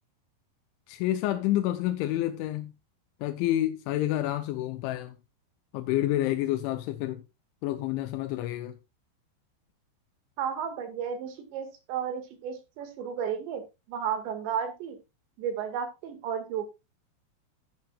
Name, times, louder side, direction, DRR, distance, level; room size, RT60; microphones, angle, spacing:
voice 1, 0.9-2.7 3.2-5.2 5.7-7.2 7.6-8.8, left 14 dB, 90° left, 3.2 m, -29 dB
voice 2, 10.4-13.6 13.9-15.0 15.4-16.7, right 8 dB, 75° right, 4.2 m, -33 dB
12.5 x 10.5 x 2.4 m
omnidirectional pair, 5.3 m